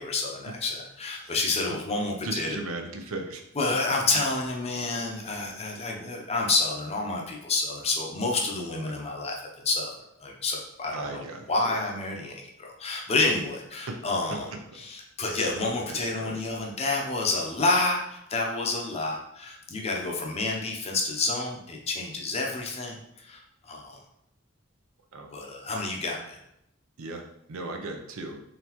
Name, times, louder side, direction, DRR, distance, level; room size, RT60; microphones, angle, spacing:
voice 1, 0.0-2.5 3.6-9.9 10.2-14.5 14.8-24.0 25.3-26.4, left 3 dB, 30° left, 0 dB, 0.6 m, -29 dB
voice 2, 2.2-3.4 10.9-11.7 13.8-14.0 14.3-14.4 15.4-15.5 15.9-16.4 25.1-25.3 27.0-28.4, right 2 dB, 90° right, 3 dB, 0.6 m, -37 dB
3.9 x 3.3 x 3.0 m, 0.80 s
head